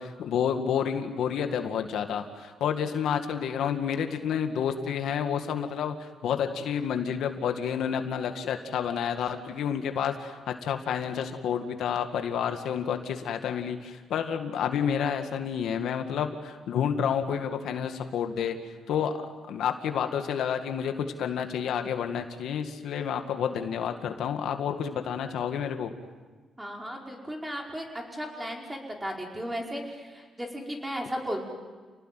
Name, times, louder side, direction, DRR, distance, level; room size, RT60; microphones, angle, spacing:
voice 1, 0.0-18.6 18.9-19.1 19.5-20.9 21.2-25.9, left 8 dB, 80° left, 6 dB, 2.1 m, -29 dB
voice 2, 26.6-31.5, equal, 10° right, 0 dB, 5.1 m, -35 dB
29.5 x 19.0 x 9.3 m, 1.4 s
cardioid pair, 115°, 0 cm